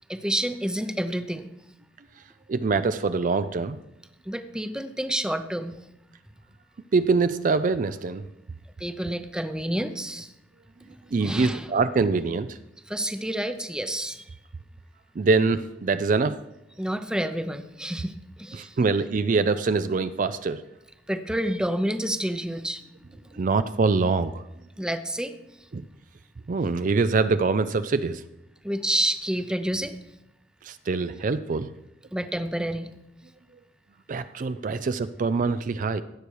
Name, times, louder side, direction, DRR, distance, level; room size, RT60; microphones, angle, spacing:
voice 1, 0.1-1.5 4.2-5.8 8.8-10.3 10.8-11.0 11.2-11.7 12.9-14.4 16.8-18.8 21.1-23.4 24.8-25.7 28.6-30.0 32.1-32.9, right 1 dB, 5° right, 9 dB, 0.6 m, -29 dB
voice 2, 2.5-3.8 6.9-8.2 11.1-12.6 15.2-16.4 18.5-20.6 23.4-24.4 25.7-25.8 26.5-28.2 30.6-31.7 34.1-36.0, right 4 dB, 45° right, 12 dB, 0.4 m, -24 dB
16.5 x 6.8 x 4.7 m, 0.90 s
head